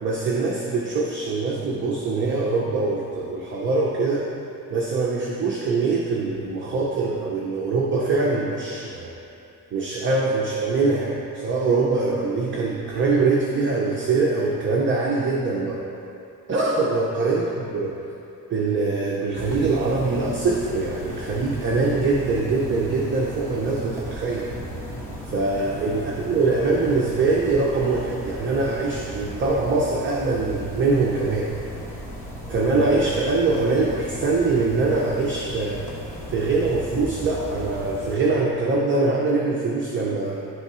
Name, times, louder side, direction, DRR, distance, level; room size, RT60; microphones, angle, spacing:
voice 1, 0.0-4.3 4.7-9.2 9.7-15.9 16.5-18.1 18.5-24.5 25.2-31.6 32.5-35.9 36.3-40.4, right 3 dB, 35° right, -2 dB, 0.6 m, -23 dB
sound 1, 19.3-38.2, equal, 5° left, 1.1 m, -36 dB
10.5 x 3.6 x 4.2 m, 2.7 s
cardioid pair, 155°, 36 cm